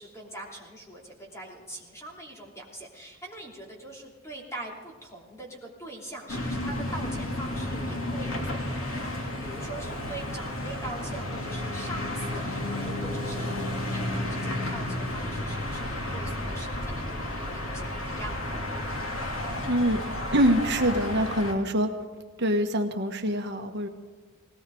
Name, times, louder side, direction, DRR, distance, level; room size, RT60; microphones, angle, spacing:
voice 1, 0.0-18.7, right 1 dB, 15° left, -1 dB, 3.0 m, -43 dB
sound 1, 6.3-21.5, left 1 dB, 80° left, 2.8 m, -32 dB
voice 2, 19.7-20.0 20.3-21.9 22.4-23.9, equal, 55° right, 5 dB, 1.3 m, -25 dB
19.5 x 18.0 x 3.9 m, 1.4 s
head